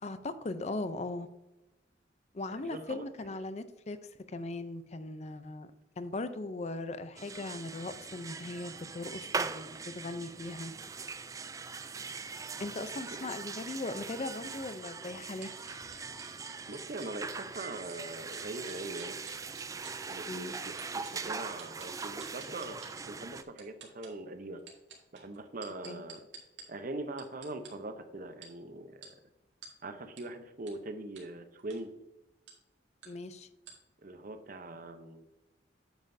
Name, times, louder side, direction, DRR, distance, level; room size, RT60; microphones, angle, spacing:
voice 1, 0.0-1.3 2.3-4.0 4.3-5.7 6.0-10.7 12.6-15.5 15.8-16.0 20.3-20.5 25.9-26.0 33.1-33.5, left 2 dB, 40° left, 12 dB, 0.5 m, -39 dB
voice 2, 2.5-3.4 13.1-13.3 16.7-19.2 20.1-24.6 25.1-26.2 26.7-29.1 29.8-31.9 34.0-35.3, right 2 dB, 50° right, 8 dB, 0.8 m, -42 dB
sound 1, 7.2-23.4, right 4 dB, 20° right, 0.3 m, -41 dB
sound 2, 15.4-18.0 18.3-20.1 20.8-22.9 23.4-24.1 24.6-26.6 27.2-27.7 28.4-28.5 29.0-29.1 29.6-29.7 30.2-30.3 30.7-30.8 31.2-31.3 31.6-31.8 32.5-32.6 33.0-33.1 33.7-33.8, right 6 dB, 85° right, 1.9 m, -49 dB
9.1 x 7.4 x 2.7 m, 0.98 s
head